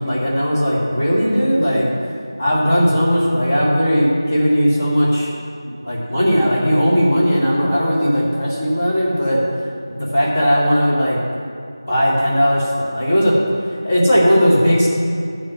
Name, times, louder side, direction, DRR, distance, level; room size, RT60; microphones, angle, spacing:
voice 1, 0.0-1.9 2.4-5.3 5.8-9.4 9.9-11.2 11.9-13.3 13.8-14.9, equal, 35° left, -6 dB, 2.3 m, -17 dB
10.5 x 4.5 x 7.9 m, 2.3 s
figure-of-eight pair, 180°, 2 cm